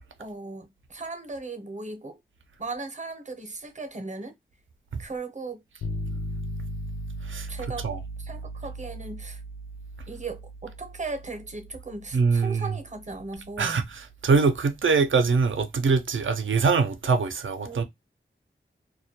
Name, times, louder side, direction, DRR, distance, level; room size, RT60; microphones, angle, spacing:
voice 1, 0.2-2.2 2.6-4.3 5.0-5.6 7.5-7.9 8.2-9.4 10.1-13.8 17.6-17.8, right 3 dB, 35° right, 0.6 m, -37 dB
sound 1, 5.8-15.7, equal, 85° left, 0.4 m, -38 dB
voice 2, 12.1-12.7 13.6-17.8, right 4 dB, 80° right, 0.5 m, -23 dB
2.2 x 2.1 x 2.7 m
wide cardioid pair, 50°, 20 cm